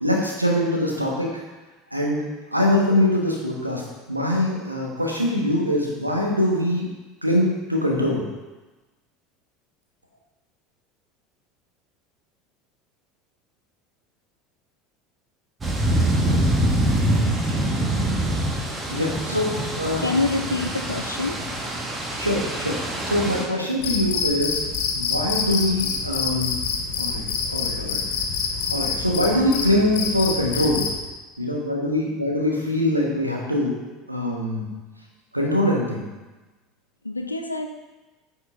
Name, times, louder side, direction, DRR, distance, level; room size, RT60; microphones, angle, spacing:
voice 1, 0.0-1.4 1.9-2.2 2.5-3.8 4.1-6.8 7.2-8.3 18.9-20.1 22.1-22.8 23.0-24.6 24.9-26.5 27.0-27.2 27.5-28.0 28.7-30.9 31.4-33.8 34.1-34.6 35.3-36.0, left 1 dB, 85° right, -1 dB, 1.4 m, -23 dB
sound 1, 15.6-23.4, right 1 dB, 20° right, 1.3 m, -24 dB
voice 2, 20.0-21.4 37.0-37.7, left 3 dB, 85° left, 5 dB, 0.4 m, -26 dB
Cricket, 23.8-31.0, left 5 dB, 60° left, 1.0 m, -27 dB
9.4 x 5.3 x 3.6 m, 1.2 s
figure-of-eight pair, 70°, 0 cm